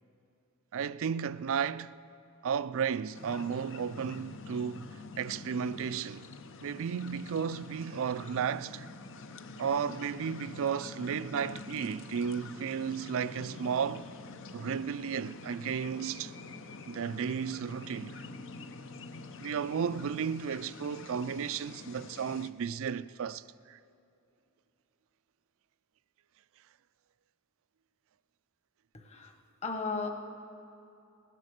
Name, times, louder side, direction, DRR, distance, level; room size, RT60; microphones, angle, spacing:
voice 1, 0.7-2.0 2.4-6.3 6.6-8.9 9.6-14.1 14.5-16.3 16.9-18.2 19.4-23.8, right 7 dB, 65° right, 0.4 m, -34 dB
sound 1, 3.1-22.5, left 3 dB, 60° left, 0.7 m, -46 dB
voice 2, 29.6-30.1, left 4 dB, 30° left, 1.3 m, -34 dB
16.5 x 11.5 x 6.6 m
head